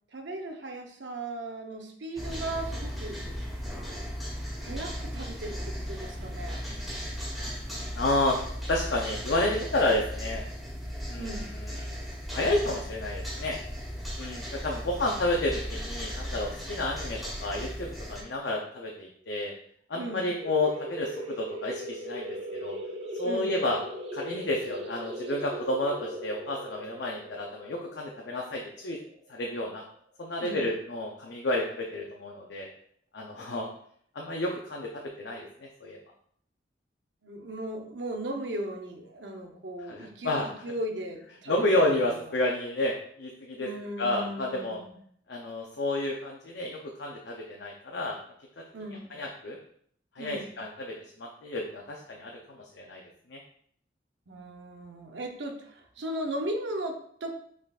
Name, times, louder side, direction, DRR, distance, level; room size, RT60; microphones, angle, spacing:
voice 1, 0.1-3.2 4.6-5.6 5.9-6.6 11.2-11.5 19.9-20.3 23.2-23.6 30.4-30.7 37.2-41.5 43.6-44.9 48.7-49.2 50.2-50.5 54.3-57.3, right 1 dB, 75° right, 3 dB, 0.8 m, -37 dB
sound 1, 2.2-18.2, equal, ahead, 1.3 m, -36 dB
voice 2, 7.9-8.4 8.7-10.4 11.1-11.9 12.3-13.6 14.2-19.5 19.9-21.1 21.4-22.8 23.2-23.8 24.1-29.0 29.3-29.8 30.2-32.7 33.1-33.7 34.1-36.0 39.9-40.5 41.5-43.7 44.0-44.8 45.3-48.2 49.1-49.6 50.2-53.0 53.3-53.4, left 1 dB, 70° left, -1 dB, 0.6 m, -30 dB
sound 2, 20.4-29.7, equal, 35° right, 0.6 m, -38 dB
5.4 x 3.8 x 2.4 m, 0.64 s
head